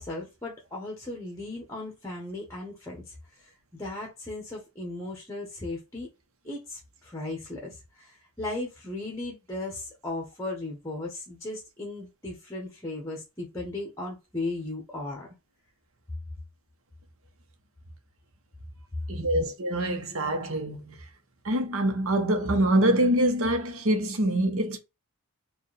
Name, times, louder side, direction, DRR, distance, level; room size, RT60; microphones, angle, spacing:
voice 1, 0.0-6.1 6.4-15.3, left 2 dB, 15° left, 1.1 m, -36 dB
voice 2, 19.1-21.0 21.4-24.8, right 1 dB, 65° right, 1.0 m, -25 dB
4.5 x 2.5 x 3.3 m
head